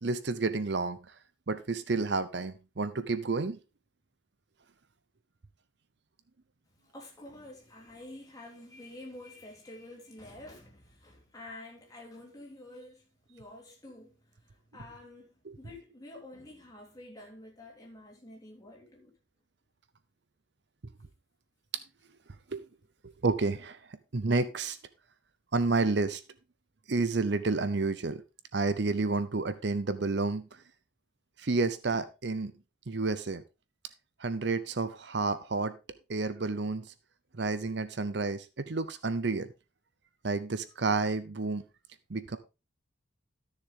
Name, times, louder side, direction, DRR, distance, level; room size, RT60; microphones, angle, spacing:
voice 1, 0.0-1.0 1.5-3.6 15.5-15.6 22.5-22.7 23.2-23.8 24.1-24.8 25.5-26.2 26.9-28.2 28.5-30.5 31.4-32.5 32.9-33.4 34.2-35.8 36.1-36.9 37.4-39.5 40.2-41.6 42.1-42.4, right 3 dB, 55° right, 0.7 m, -30 dB
voice 2, 6.7-19.1 32.4-32.6, left 1 dB, 20° left, 3.3 m, -49 dB
13.5 x 6.7 x 3.7 m
head